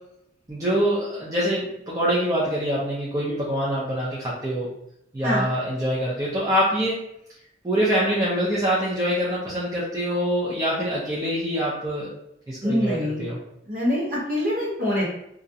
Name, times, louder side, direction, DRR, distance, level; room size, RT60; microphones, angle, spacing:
voice 1, 0.5-4.7 5.1-7.0 7.6-12.1 12.5-13.4, equal, 20° right, -9 dB, 0.4 m, -25 dB
voice 2, 12.6-13.3 13.7-15.0, left 1 dB, 45° right, -6 dB, 0.9 m, -24 dB
2.4 x 2.0 x 2.6 m, 0.78 s
head